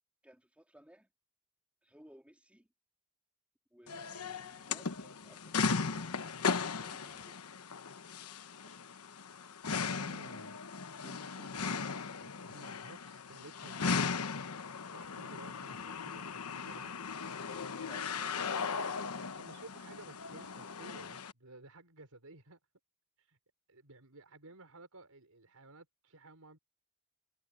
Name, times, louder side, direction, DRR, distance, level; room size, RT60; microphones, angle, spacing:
voice 1, 0.2-1.1 1.8-2.7 3.7-7.4 11.0-11.3 17.9-18.0, equal, 5° right, 3.6 m, -60 dB
sound 1, 3.9-21.3, left 5 dB, 80° left, 1.1 m, -37 dB
voice 2, 9.8-10.6 11.0-14.1 14.9-22.6 23.2-23.4 23.7-26.6, right 2 dB, 80° right, 4.8 m, -55 dB
head